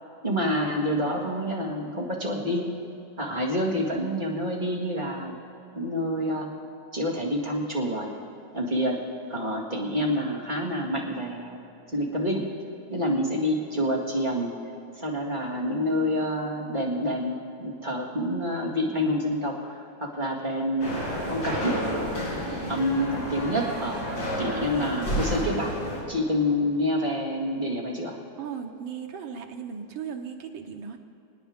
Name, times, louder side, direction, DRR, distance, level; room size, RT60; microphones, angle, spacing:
voice 1, 0.2-2.8 3.2-5.4 5.8-6.5 6.9-8.2 8.5-9.0 9.3-12.5 12.9-14.5 14.9-21.0 21.3-21.8 22.7-25.7 26.1-28.2, equal, 25° right, -3 dB, 2.0 m, -28 dB
sound 1, 20.8-26.0, equal, 75° left, 4.5 m, -30 dB
voice 2, 28.4-31.0, right 6 dB, 80° right, 3 dB, 1.9 m, -37 dB
26.0 x 9.6 x 3.6 m, 2.8 s
omnidirectional pair, 2.1 m